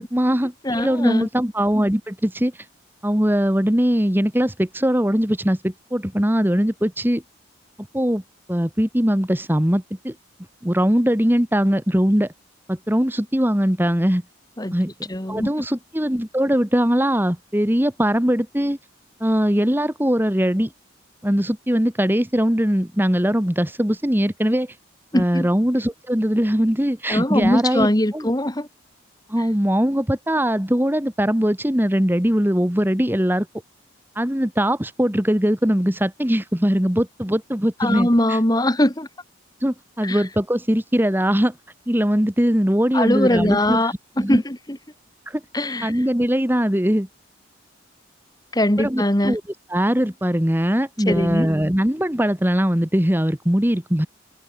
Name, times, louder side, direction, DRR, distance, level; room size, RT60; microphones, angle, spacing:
voice 1, 0.0-2.5 3.0-7.2 7.9-8.2 8.5-10.1 10.6-12.3 12.7-14.2 14.7-18.8 19.2-20.7 21.2-24.7 25.1-27.9 28.1-28.3 29.3-33.5 34.1-38.4 39.6-41.5 41.9-43.8 44.2-44.4 45.3-45.4 45.8-47.1 48.8-49.4 49.7-54.1, equal, 10° right, 1.7 m, -21 dB
voice 2, 0.6-1.3 14.6-14.7 15.1-15.5 25.1-25.5 27.1-28.7 37.8-39.1 40.0-40.2 42.9-44.8 45.5-45.9 48.5-49.4 51.1-51.5, left 1 dB, 20° left, 2.1 m, -21 dB
open air
head